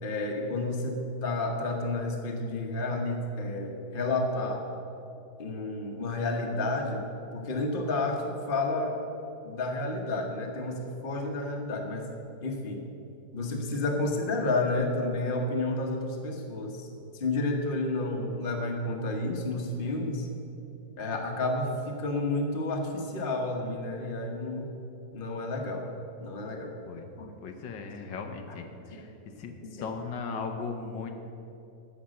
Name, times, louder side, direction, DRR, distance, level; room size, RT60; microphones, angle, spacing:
voice 1, 0.0-4.6 5.4-7.0 7.3-8.9 9.4-12.1 12.4-12.8 13.3-16.7 17.2-20.3 21.0-24.7 25.1-25.9 26.2-26.7 27.2-27.3 28.9-29.1 29.6-29.8 30.9-31.0, left 2 dB, 35° left, 2 dB, 1.2 m, -30 dB
voice 2, 27.4-28.6 29.0-29.1 29.4-29.5 29.8-31.2, left 5 dB, 80° left, 4 dB, 1.6 m, -37 dB
11.5 x 7.3 x 6.4 m, 2.9 s
omnidirectional pair, 1.9 m